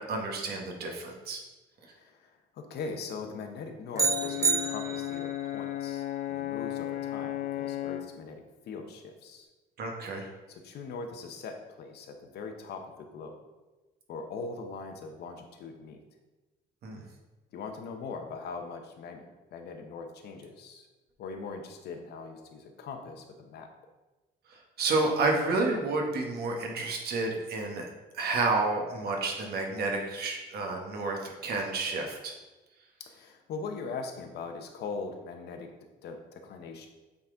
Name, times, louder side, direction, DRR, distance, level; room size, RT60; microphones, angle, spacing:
voice 1, 0.0-1.4 9.8-10.3 16.8-17.0 24.5-27.9 28.1-32.3, right 3 dB, 65° right, 1 dB, 1.4 m, -30 dB
voice 2, 1.8-9.5 10.5-13.4 14.1-16.0 17.5-20.9 21.2-23.7 33.0-35.7 36.0-36.9, left 4 dB, 70° left, 4 dB, 0.9 m, -41 dB
Brass instrument, 3.9-8.2, left 13 dB, 55° left, 0.4 m, -34 dB
sound 1, 4.0-5.4, right 4 dB, 20° right, 0.3 m, -28 dB
8.4 x 4.0 x 3.8 m, 1.1 s
cardioid pair, 135°, 17 cm